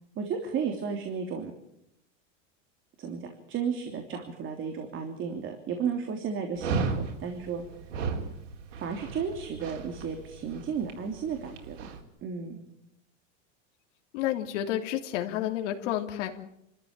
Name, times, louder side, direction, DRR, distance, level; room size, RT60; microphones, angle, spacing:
voice 1, 0.1-1.5 3.0-7.6 8.8-11.9 12.2-12.6, right 6 dB, 35° right, 4 dB, 3.2 m, -33 dB
Dog, 6.6-12.0, right 4 dB, 85° right, 4.3 m, -35 dB
voice 2, 14.1-16.4, left 12 dB, 70° left, 4 dB, 3.0 m, -30 dB
29.0 x 14.0 x 8.9 m, 0.82 s
supercardioid pair, 140°, 37 cm